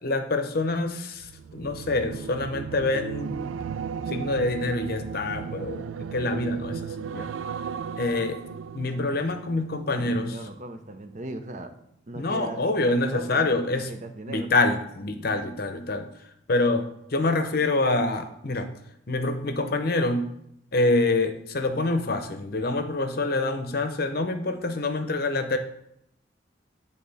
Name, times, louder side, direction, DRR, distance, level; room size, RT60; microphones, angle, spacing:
voice 1, 0.0-3.5 4.1-7.3 8.0-8.4 8.7-10.4 12.2-13.9 14.3-16.1 16.5-18.7 19.1-20.3 20.7-25.6, left 2 dB, 50° left, 8 dB, 0.7 m, -26 dB
sound 1, 1.1-10.5 10.9-11.2, right 6 dB, 90° right, 0.3 m, -36 dB
voice 2, 9.9-11.7 12.1-14.5, right 1 dB, 40° right, 7 dB, 0.6 m, -38 dB
9.8 x 3.7 x 4.1 m, 0.76 s
head